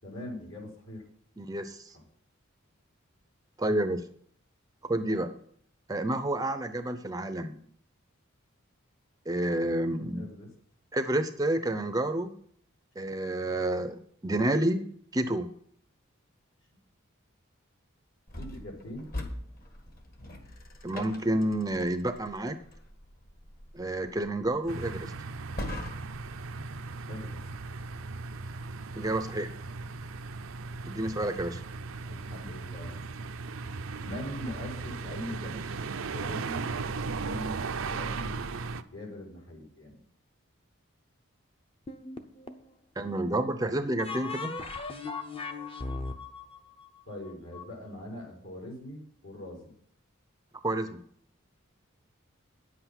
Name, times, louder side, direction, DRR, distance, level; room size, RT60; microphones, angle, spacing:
voice 1, 0.0-1.0 1.9-2.0 10.1-10.5 18.4-19.1 27.1-27.4 32.0-33.0 34.0-35.5 36.1-38.3 38.9-40.0 47.1-49.7, left 1 dB, 70° left, -1 dB, 4.5 m, -42 dB
voice 2, 1.4-2.0 3.6-4.1 4.9-5.4 5.9-7.6 9.3-10.3 10.9-12.3 13.0-14.0 14.2-14.8 15.1-15.5 20.8-22.6 23.7-25.1 29.0-29.5 30.9-31.6 43.0-44.5 50.6-51.0, right 1 dB, 15° right, 9 dB, 0.6 m, -29 dB
sound 1, 18.3-26.3, left 1 dB, 45° left, 1.7 m, -43 dB
sound 2, 24.7-38.8, right 4 dB, 75° right, 0.6 m, -37 dB
sound 3, 41.9-42.7 44.0-47.6, left 3 dB, 25° left, 0.7 m, -38 dB
9.7 x 8.0 x 5.9 m, 0.62 s
head